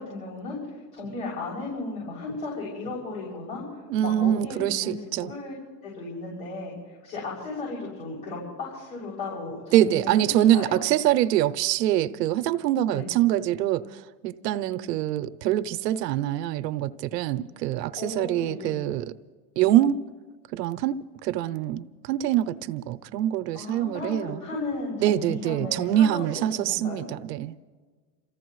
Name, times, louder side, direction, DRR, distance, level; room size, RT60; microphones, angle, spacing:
voice 1, 0.0-5.6 5.8-10.8 12.9-13.1 18.0-18.8 23.5-27.1, left 3 dB, 50° left, 6.8 m, -35 dB
voice 2, 3.9-5.3 9.7-13.8 14.2-19.0 19.6-20.0 20.5-24.4 25.0-27.5, right 12 dB, 70° right, 0.8 m, -24 dB
29.0 x 15.0 x 3.1 m
supercardioid pair, 140°, 50 cm